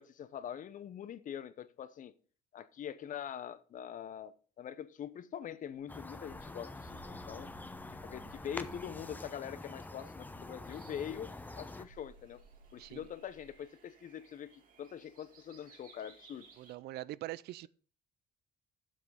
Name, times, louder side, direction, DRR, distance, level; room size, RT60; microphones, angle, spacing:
voice 1, 0.0-2.1 2.5-7.5 7.9-11.3 11.6-12.4 12.7-16.5, left 9 dB, 50° left, 0.8 m, -44 dB
sound 1, 5.7-8.9 10.1-13.6, right 2 dB, 90° right, 4.0 m, -60 dB
sound 2, 5.9-11.9, left 2 dB, 10° left, 0.7 m, -46 dB
sound 3, 10.7-16.7, right 5 dB, 55° right, 2.6 m, -62 dB
voice 2, 16.6-17.7, right 16 dB, 70° right, 0.5 m, -43 dB
7.6 x 6.2 x 7.0 m
cardioid pair, 110°, 17 cm